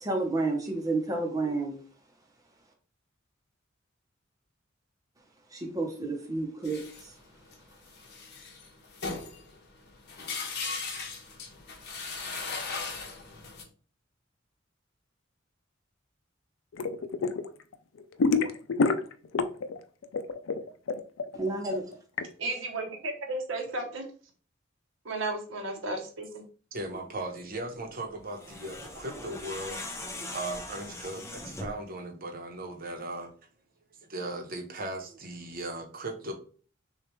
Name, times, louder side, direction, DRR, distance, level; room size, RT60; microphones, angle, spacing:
voice 1, 0.0-1.8 5.5-7.1 21.3-21.8, right 2 dB, 20° right, 0.8 m, -30 dB
sound 1, 6.6-13.6, left 4 dB, 55° left, 1.2 m, -38 dB
sound 2, 16.7-17.5 17.7-19.8 20.0-22.2, left 4 dB, 85° left, 0.4 m, -27 dB
voice 2, 22.4-24.1 25.0-26.4, right 2 dB, 75° right, 0.9 m, -34 dB
voice 3, 26.7-29.8 30.2-33.3 34.1-36.3, right 2 dB, 50° right, 0.9 m, -37 dB
sound 3, 28.3-31.9, left 2 dB, 15° left, 0.6 m, -40 dB
6.5 x 2.4 x 3.0 m
head